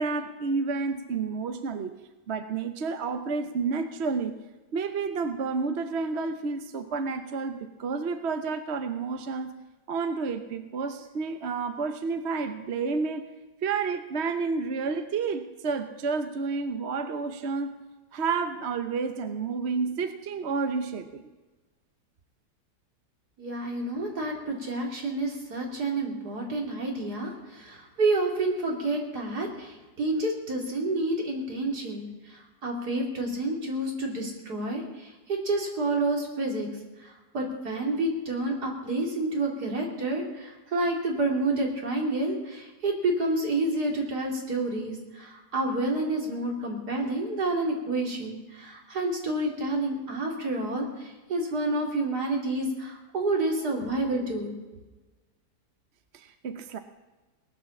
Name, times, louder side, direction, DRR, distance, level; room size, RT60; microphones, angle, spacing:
voice 1, 0.0-1.9 2.3-4.3 4.7-9.5 9.9-13.3 13.6-17.8 18.1-21.2 56.1-56.8, right 4 dB, 50° right, 8 dB, 1.0 m, -30 dB
voice 2, 23.4-36.7 37.0-54.5, right 2 dB, 70° right, 0 dB, 3.4 m, -29 dB
19.0 x 10.0 x 7.1 m, 1.2 s
omnidirectional pair, 1.7 m